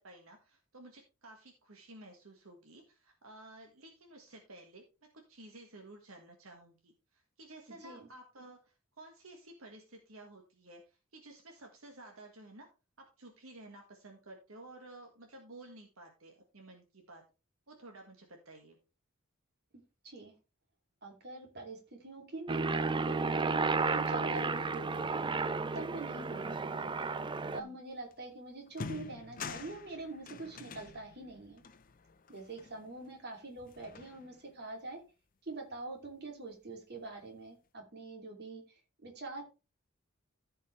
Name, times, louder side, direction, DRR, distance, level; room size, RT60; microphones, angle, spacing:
voice 1, 0.0-12.7 13.0-17.2 17.7-18.8 27.5-27.8, right 2 dB, 75° right, 2 dB, 1.7 m, -53 dB
voice 2, 21.0-23.6 23.9-25.3 25.7-26.9 27.5-31.6 32.3-35.0 35.4-38.6 39.0-39.4, right 3 dB, 50° right, 1 dB, 2.9 m, -44 dB
Aircraft, 22.5-27.6, right 4 dB, 20° right, 0.5 m, -32 dB
sound 1, 28.1-28.2 28.7-33.2 33.6-34.6, left 4 dB, 40° left, 0.7 m, -47 dB
14.5 x 5.5 x 3.3 m, 0.30 s
head